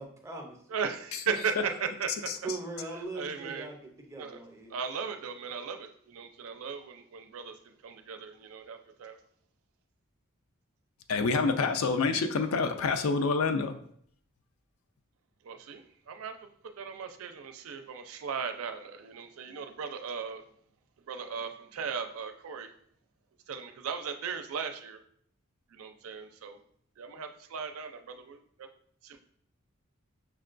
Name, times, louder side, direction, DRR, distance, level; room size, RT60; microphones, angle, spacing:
voice 1, 0.0-0.6 2.4-4.7, right 2 dB, 15° right, 2 dB, 0.5 m, -40 dB
voice 2, 0.7-2.3 2.9-3.7 4.2-4.4 4.7-9.2 15.4-16.4 16.8-20.4 21.1-22.7 23.5-25.0 25.7-26.6 27.0-28.7 29.0-29.2, right 6 dB, 85° right, 7 dB, 0.4 m, -37 dB
voice 3, 11.1-13.8, left 4 dB, 85° left, 7 dB, 0.4 m, -27 dB
5.6 x 2.2 x 2.5 m, 0.63 s
head